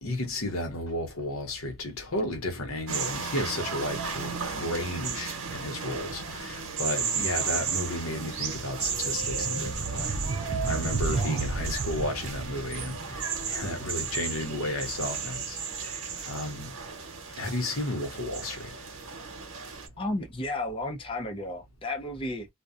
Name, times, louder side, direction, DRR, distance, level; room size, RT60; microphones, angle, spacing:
voice 1, 0.0-16.0 16.3-16.7 17.4-18.7, left 1 dB, 90° left, 0.9 m, -33 dB
sound 1, 2.9-19.9, right 6 dB, 85° right, 0.9 m, -34 dB
sound 2, 6.7-6.9 7.3-16.1, right 3 dB, 45° right, 0.4 m, -34 dB
voice 2, 7.0-7.3 11.0-11.4 20.0-22.5, left 2 dB, 25° left, 0.4 m, -34 dB
2.5 x 2.1 x 2.4 m
head